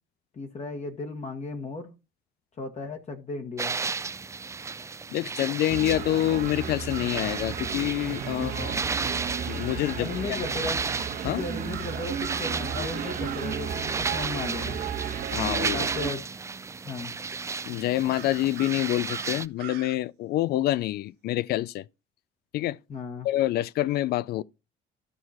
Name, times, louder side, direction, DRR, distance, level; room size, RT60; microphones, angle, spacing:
voice 1, 0.3-1.9 2.6-3.7 8.3-8.8 10.0-10.8 11.3-14.8 15.7-16.2 16.8-17.1 22.9-23.3, left 3 dB, 40° left, 1.4 m, -35 dB
sound 1, 3.6-19.5, right 4 dB, 15° right, 0.4 m, -34 dB
voice 2, 5.1-8.8 9.5-10.4 11.2-11.4 15.3-15.9 17.6-21.8 22.5-22.8 23.2-24.4, left 14 dB, 70° left, 0.4 m, -27 dB
sound 2, 5.7-16.1, right 7 dB, 60° right, 1.3 m, -34 dB
sound 3, 5.9-7.3 11.7-13.6 18.1-20.0, right 13 dB, 75° right, 0.7 m, -43 dB
12.5 x 4.7 x 4.3 m
cardioid pair, 110°, 17 cm